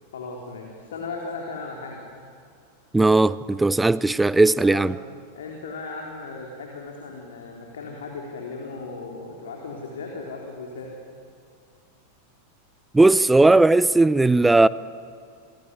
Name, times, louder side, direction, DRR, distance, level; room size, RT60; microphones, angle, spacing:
voice 1, 0.1-2.1 4.6-5.0 5.3-10.9, left 3 dB, 65° left, 3.8 m, -36 dB
voice 2, 2.9-5.0 12.9-14.7, right 2 dB, 5° right, 0.6 m, -17 dB
27.5 x 20.0 x 9.8 m
figure-of-eight pair, 90°, 0 cm